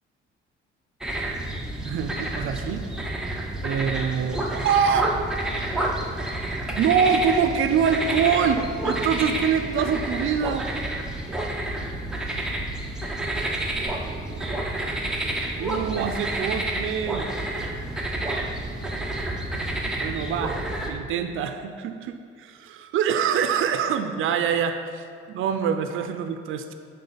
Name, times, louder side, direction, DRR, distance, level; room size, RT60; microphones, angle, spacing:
sound 1, 1.0-20.9, right 1 dB, 5° right, 0.7 m, -29 dB
voice 1, 1.8-2.8 3.6-5.2 6.8-10.7 13.6-14.6 15.6-17.3 20.0-20.6 20.9-26.7, right 7 dB, 75° right, 8 dB, 0.5 m, -25 dB
11.0 x 3.8 x 5.6 m, 2.3 s
cardioid pair, 170°, 21 cm